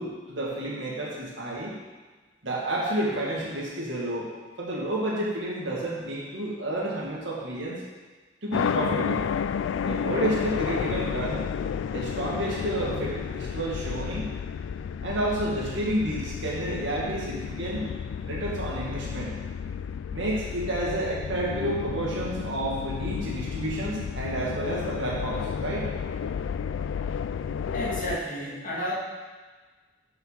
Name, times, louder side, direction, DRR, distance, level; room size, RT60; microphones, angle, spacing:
voice 1, 0.0-1.8 2.4-4.3 4.6-7.8 8.4-9.2 9.8-11.4 11.9-14.3 15.0-17.9 18.2-19.3 20.1-25.9, right 1 dB, 75° right, -4 dB, 2.0 m, -30 dB
sound 1, 8.5-28.2, left 7 dB, 85° left, 0.3 m, -32 dB
voice 2, 27.7-28.9, equal, 45° left, -6 dB, 2.3 m, -31 dB
6.7 x 5.8 x 5.6 m, 1.3 s
head